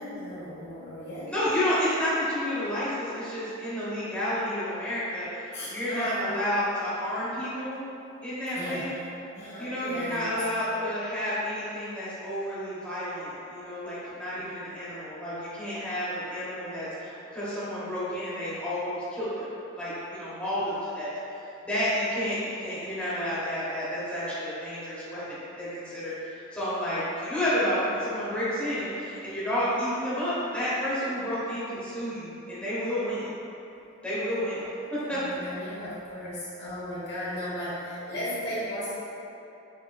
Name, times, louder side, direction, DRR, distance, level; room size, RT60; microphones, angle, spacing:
voice 1, 0.0-1.3 5.5-6.4 8.5-9.0 9.3-10.4 14.3-14.5 22.1-22.3 35.1-38.9, equal, 50° left, -9 dB, 1.1 m, -36 dB
voice 2, 1.3-7.8 8.2-8.9 9.6-19.5 19.8-21.1 21.6-33.3 34.0-34.6 34.9-35.2, equal, 5° left, -12 dB, 1.1 m, -30 dB
6.4 x 2.9 x 2.4 m, 2.9 s
head